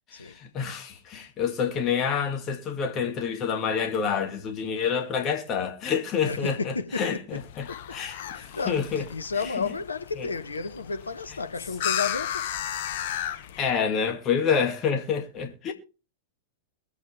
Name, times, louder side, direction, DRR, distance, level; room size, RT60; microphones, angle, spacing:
voice 1, 0.1-7.6 7.9-9.0 9.6-9.7 10.2-10.3 13.6-15.7, left 7 dB, 30° left, 2.3 m, -28 dB
voice 2, 6.2-7.4 7.7-12.5, left 4 dB, 80° left, 1.6 m, -33 dB
sound 1, 7.3-13.7, left 10 dB, 50° left, 1.4 m, -34 dB
22.5 x 8.2 x 3.4 m
figure-of-eight pair, 95°, 0 cm